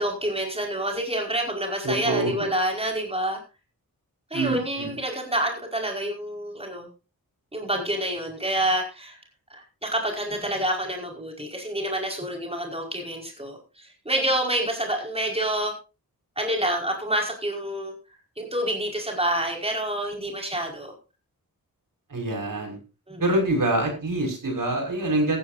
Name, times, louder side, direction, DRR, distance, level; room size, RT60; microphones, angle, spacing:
voice 1, 0.0-3.4 4.3-6.9 7.5-9.2 9.5-15.7 16.4-17.9 18.4-20.9 23.1-23.2, right 1 dB, 15° right, 1 dB, 5.0 m, -28 dB
voice 2, 1.8-2.3 4.3-5.0 22.1-22.8 23.2-25.4, right 1 dB, 60° right, 3 dB, 6.0 m, -25 dB
15.5 x 15.5 x 2.7 m, 0.30 s
wide cardioid pair, 70°, 36 cm